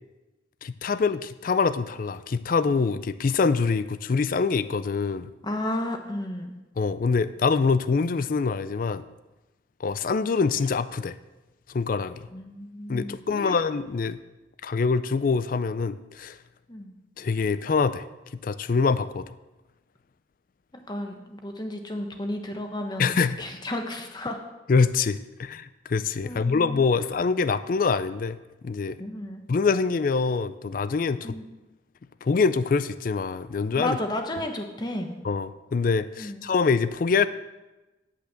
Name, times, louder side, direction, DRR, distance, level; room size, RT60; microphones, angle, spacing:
voice 1, 0.6-5.3 6.8-9.0 9.8-11.2 11.7-12.3 12.9-14.2 14.6-16.4 17.2-18.0 18.4-19.3 23.0-23.4 24.7-28.4 28.6-29.0 29.5-31.4 32.2-34.0 35.2-37.3, left 4 dB, 45° left, 14 dB, 0.4 m, -25 dB
voice 2, 5.4-6.5 12.3-13.6 16.7-16.9 20.9-24.4 26.2-27.1 29.0-29.4 31.2-31.5 33.7-35.2 36.2-36.4, left 1 dB, 25° left, 5 dB, 1.2 m, -33 dB
10.0 x 5.9 x 7.5 m, 1.1 s
head